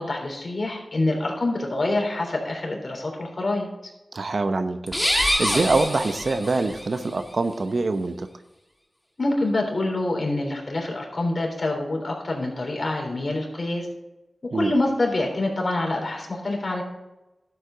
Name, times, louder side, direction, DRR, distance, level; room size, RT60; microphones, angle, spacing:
voice 1, 0.0-3.9 9.2-13.9 14.5-16.8, left 2 dB, 50° left, 1 dB, 3.4 m, -26 dB
voice 2, 4.1-8.3 14.5-14.7, right 3 dB, 65° right, 9 dB, 0.8 m, -25 dB
sound 1, 4.9-6.9, equal, 5° left, 1.8 m, -25 dB
12.0 x 8.1 x 3.9 m, 1.0 s
wide cardioid pair, 60°, 0 cm